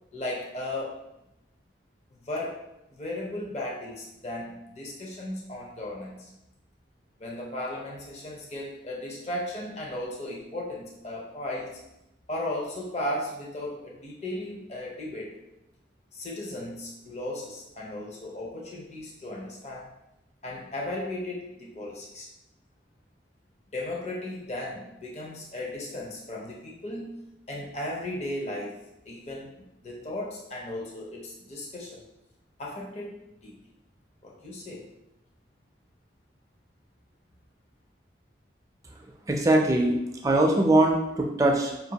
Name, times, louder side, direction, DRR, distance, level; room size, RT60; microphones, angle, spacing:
voice 1, 0.1-1.0 2.2-2.7 2.9-6.3 7.2-11.8 12.3-15.3 16.1-19.9 20.4-22.3 23.7-27.2 27.5-32.0 32.6-33.6 34.2-34.9, left 1 dB, 35° left, -3 dB, 0.6 m, -36 dB
voice 2, 39.3-40.0 40.2-41.9, right 2 dB, 20° right, 1 dB, 0.4 m, -22 dB
5.1 x 2.5 x 2.8 m, 0.88 s
head